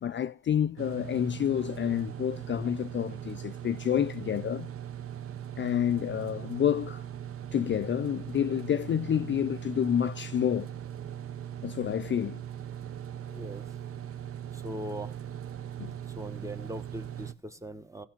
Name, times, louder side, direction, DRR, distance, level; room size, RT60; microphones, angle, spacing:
voice 1, 0.0-4.7 5.6-7.0 7.5-10.7 11.6-12.4 15.8-15.9, left 9 dB, 40° left, 0.4 m, -29 dB
sound 1, 0.8-17.3, right 10 dB, 50° right, 0.7 m, -40 dB
voice 2, 13.3-13.6 14.5-15.1 16.1-18.0, equal, 10° right, 1.2 m, -40 dB
16.0 x 5.9 x 4.5 m
cardioid pair, 90°, 30 cm